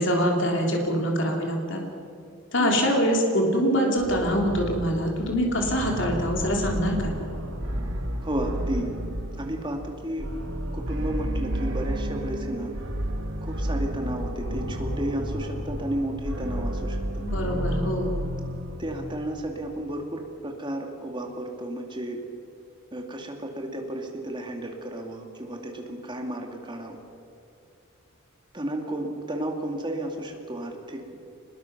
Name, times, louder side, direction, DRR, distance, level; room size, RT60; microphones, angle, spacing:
voice 1, 0.0-1.8 2.5-7.1 17.2-18.2, equal, 60° left, 0 dB, 3.2 m, -24 dB
sound 1, 4.0-19.7, equal, 65° right, 2.1 m, -31 dB
voice 2, 8.2-8.9 9.4-10.3 10.7-12.7 13.4-17.2 18.8-22.2 22.9-27.0 28.5-31.2, right 1 dB, 20° right, 2 dB, 2.5 m, -32 dB
25.5 x 21.0 x 6.1 m, 2.4 s
head